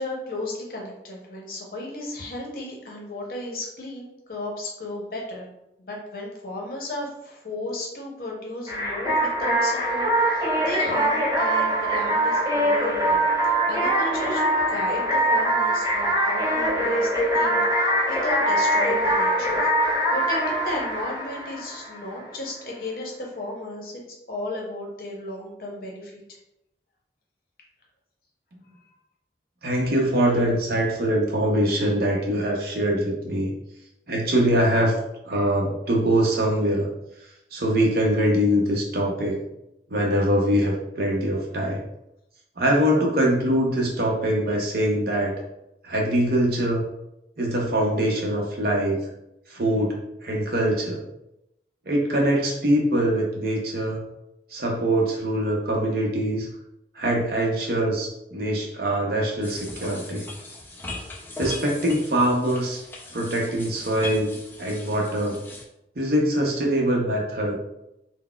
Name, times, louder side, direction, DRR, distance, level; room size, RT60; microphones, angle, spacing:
voice 1, 0.0-5.5 5.8-13.2 13.7-26.1 43.0-43.1, left 1 dB, 55° left, -1 dB, 0.7 m, -34 dB
sound 1, 8.7-22.1, right 1 dB, 20° right, 0.8 m, -23 dB
voice 2, 29.6-33.5 34.1-34.9 35.2-36.9 37.5-39.4 39.9-41.8 42.6-45.4 45.8-46.9 47.4-49.1 49.5-50.0 50.2-51.0 51.9-54.0 54.5-56.5 56.9-60.2 61.4-62.8 63.1-64.3 64.6-65.4 66.0-67.5, right 1 dB, 55° right, -1 dB, 0.6 m, -23 dB
sound 2, 59.4-65.6, left 2 dB, 10° left, 0.3 m, -38 dB
3.9 x 2.0 x 2.2 m, 0.85 s
head